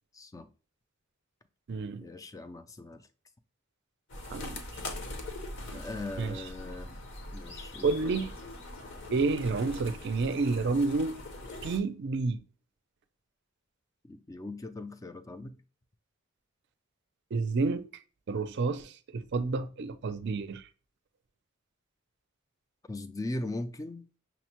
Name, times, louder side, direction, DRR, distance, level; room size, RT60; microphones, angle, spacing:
voice 1, 0.1-0.5 2.0-3.0 5.7-7.0 7.3-8.2 14.0-15.6 22.9-24.1, left 2 dB, 15° left, 0.3 m, -39 dB
voice 2, 1.7-2.1 4.3-4.6 6.2-6.4 7.8-8.3 9.1-11.2 11.6-12.4 17.3-17.9 18.3-20.7, right 3 dB, 55° right, 0.4 m, -30 dB
sound 1, 4.1-11.8, left 1 dB, 60° left, 0.8 m, -42 dB
5.9 x 2.1 x 2.9 m
head